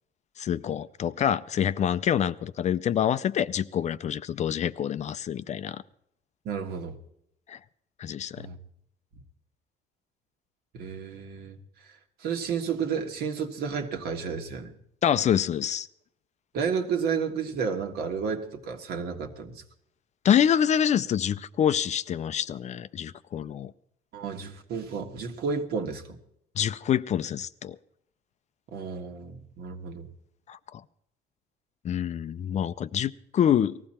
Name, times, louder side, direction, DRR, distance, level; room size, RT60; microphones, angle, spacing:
voice 1, 0.4-5.8 7.5-7.6 8.0-8.5 15.0-15.9 20.2-23.7 26.6-27.8 30.5-30.6 31.8-33.8, left 9 dB, 45° left, 0.5 m, -26 dB
voice 2, 6.4-7.0 8.4-8.6 10.7-11.6 12.2-14.7 16.5-19.6 24.1-26.0 28.7-30.1, right 6 dB, 70° right, 1.6 m, -31 dB
19.0 x 14.5 x 4.4 m
cardioid pair, 110°, 17 cm